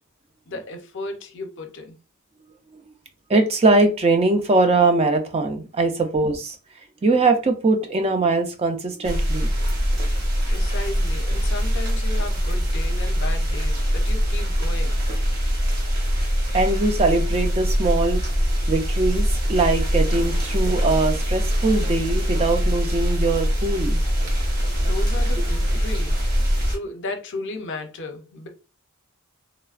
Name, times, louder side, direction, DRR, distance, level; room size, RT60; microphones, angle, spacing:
voice 1, 0.5-2.0 10.5-15.0 24.8-26.3 26.7-28.5, left 2 dB, 55° left, 0.6 m, -34 dB
voice 2, 3.3-6.6 7.0-9.5 16.5-24.0, right 3 dB, 30° right, 0.4 m, -21 dB
sound 1, 9.0-26.8, equal, 45° right, 0.9 m, -22 dB
3.0 x 2.0 x 2.4 m
head